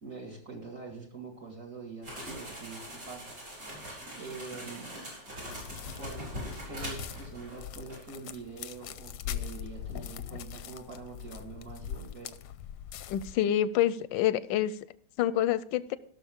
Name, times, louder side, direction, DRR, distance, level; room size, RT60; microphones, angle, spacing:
voice 1, 0.0-3.7 4.2-4.9 6.0-6.3 6.6-12.3, right 4 dB, 45° right, -1 dB, 2.5 m, -44 dB
sound 1, 2.0-7.6 7.9-8.1, equal, 60° right, 5.5 m, -42 dB
sound 2, 5.5-13.3, left 10 dB, 70° left, 1.1 m, -42 dB
voice 2, 13.1-14.8 15.2-16.0, left 11 dB, 90° left, 16 dB, 1.3 m, -27 dB
17.0 x 6.4 x 3.6 m, 0.62 s
omnidirectional pair, 2.0 m